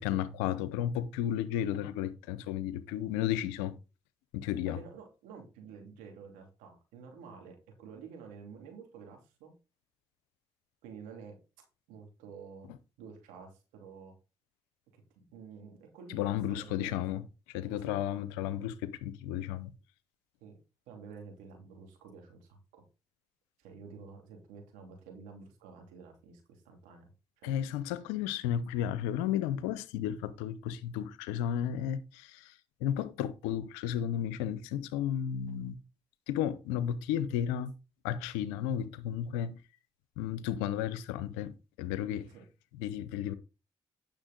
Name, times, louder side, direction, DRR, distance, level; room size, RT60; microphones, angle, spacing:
voice 1, 0.0-3.8 4.3-4.8 16.1-19.7 27.4-35.8 36.3-37.7 38.0-39.6 40.2-42.3 42.7-43.3, left 10 dB, 90° left, 0.7 m, -33 dB
voice 2, 4.7-9.5 10.8-11.4 11.9-12.7 13.0-14.1 14.9-17.0 17.8-18.0 20.4-20.6 20.9-22.8 23.6-27.1 27.4-27.6 42.3-42.5, right 5 dB, 85° right, 2.7 m, -50 dB
9.9 x 6.6 x 3.8 m
hypercardioid pair, 45°, 13 cm